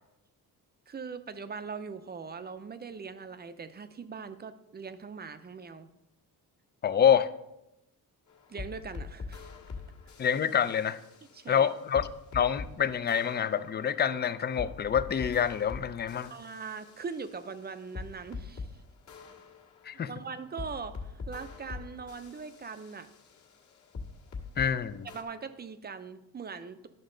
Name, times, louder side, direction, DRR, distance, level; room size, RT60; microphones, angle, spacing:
voice 1, 0.9-5.9 8.5-9.5 11.3-11.7 16.3-18.7 20.1-23.1 25.1-26.9, right 5 dB, 30° right, 11 dB, 0.5 m, -41 dB
voice 2, 6.8-7.3 10.2-11.0 11.5-12.1 12.3-16.3 19.8-20.1 24.6-25.1, left 8 dB, 30° left, 14 dB, 0.4 m, -26 dB
sound 1, 8.3-12.7 13.1-18.7 19.1-24.7 25.1-25.2, left 4 dB, 50° left, 1.6 m, -44 dB
11.0 x 6.2 x 3.8 m, 0.89 s
cardioid pair, 125°, 36 cm